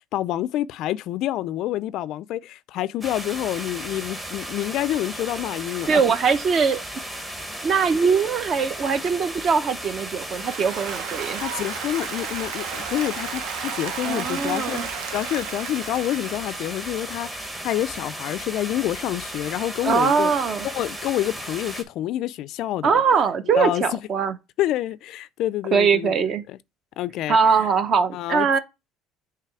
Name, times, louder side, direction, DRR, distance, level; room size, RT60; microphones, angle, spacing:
voice 1, 0.1-6.0 11.4-14.8 15.1-20.3 20.6-23.0 23.5-24.0 24.6-26.6 27.0-27.7 28.1-28.6, left 13 dB, 60° left, 0.3 m, -28 dB
sound 1, 3.0-21.8, right 1 dB, 10° right, 1.1 m, -35 dB
voice 2, 5.9-6.8 7.6-11.4 14.0-14.9 19.8-20.7 22.8-24.4 25.7-26.4 27.3-28.6, right 6 dB, 40° right, 0.8 m, -21 dB
Applause, 10.2-17.4, right 8 dB, 70° right, 0.8 m, -34 dB
6.7 x 3.0 x 4.7 m
cardioid pair, 125°, 0 cm